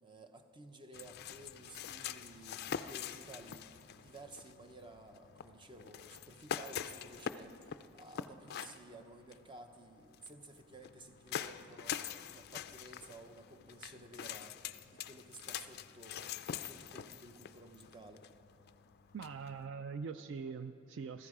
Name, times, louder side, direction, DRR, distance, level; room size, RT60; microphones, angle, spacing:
voice 1, 0.0-18.3, right 2 dB, 20° right, 7 dB, 0.7 m, -54 dB
sound 1, 0.9-19.7, left 8 dB, 45° left, 0.3 m, -45 dB
voice 2, 19.1-21.3, right 5 dB, 55° right, 10 dB, 0.3 m, -43 dB
15.5 x 14.0 x 4.8 m, 2.7 s
head